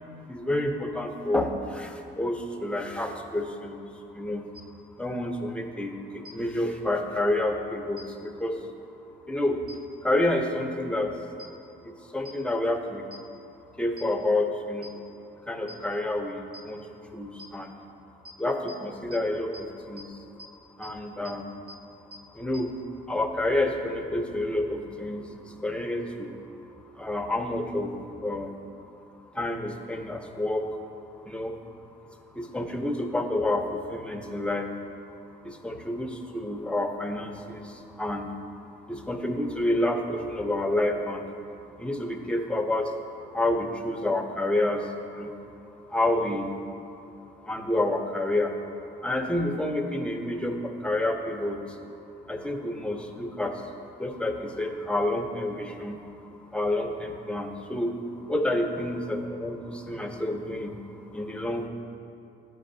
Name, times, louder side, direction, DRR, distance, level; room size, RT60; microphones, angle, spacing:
voice 1, 0.3-1.9 2.2-3.8 4.1-4.4 5.0-8.6 9.3-9.6 10.0-11.1 12.1-13.0 13.8-14.9 15.5-16.8 17.1-17.7 18.4-19.5 19.9-20.1 20.8-21.4 22.4-22.7 23.1-25.2 25.6-26.3 27.0-28.5 29.4-30.6 31.3-31.5 32.4-34.7 35.6-37.7 38.0-38.3 38.9-41.2 41.8-42.9 43.3-44.8 45.2-45.3 45.9-46.5 47.5-48.5 49.0-51.6 52.3-53.5 54.0-56.0 56.5-57.9 58.3-60.7 61.1-61.7, left 1 dB, 5° left, 3 dB, 0.7 m, -28 dB
sound 1, 4.5-4.6 6.2-6.3 8.0-8.1 9.7-9.8 11.4-11.5 12.2-12.3 13.1-13.2 14.0-14.1 14.8-14.9 15.7-15.8 16.5-16.6 17.4-17.5 18.2-18.3 18.7-18.8 19.1-19.2 19.5-19.6 20.0-20.1 20.4-20.5 20.8-20.9 21.2-21.3 21.7-21.8 22.1-22.2 22.5-22.6, equal, 50° right, 0.8 m, -43 dB
12.5 x 4.8 x 2.7 m, 2.7 s
cardioid pair, 90°, 20 cm